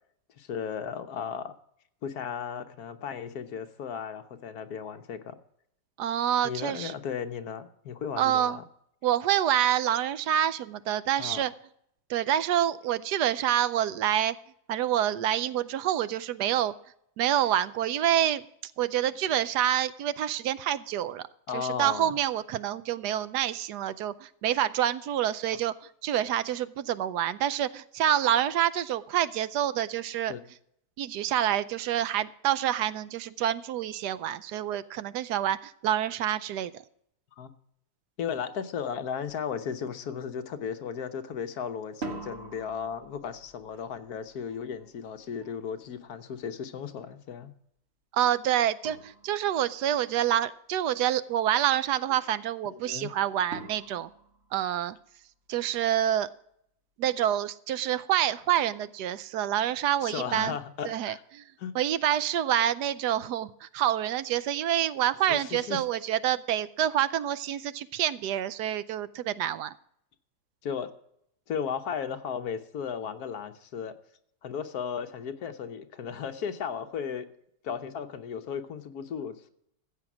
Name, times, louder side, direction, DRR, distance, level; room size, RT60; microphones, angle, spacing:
voice 1, 0.4-1.5 2.0-5.4 6.4-8.6 11.2-11.4 21.5-22.2 30.3-30.4 37.4-37.5 38.2-47.5 52.7-53.1 60.0-61.2 61.6-61.7 65.3-65.8 70.6-70.9 71.5-74.0 74.4-77.3 77.6-79.5, left 7 dB, 70° left, 8 dB, 1.4 m, -35 dB
voice 2, 6.0-6.9 8.2-8.6 9.0-11.5 12.1-14.4 14.7-16.7 17.2-18.4 18.8-21.3 21.5-25.7 26.0-30.3 31.0-36.7 48.1-54.1 54.5-55.0 55.5-56.3 57.0-60.6 60.8-61.4 61.7-69.7, right 11 dB, 80° right, 16 dB, 1.2 m, -27 dB
sound 1, 39.3-39.4 39.8-40.3 41.8-46.7 48.3-48.4 48.8-49.8 53.5-55.2, right 2 dB, 40° right, 1.8 m, -45 dB
14.5 x 7.9 x 6.1 m, 0.72 s
omnidirectional pair, 1.7 m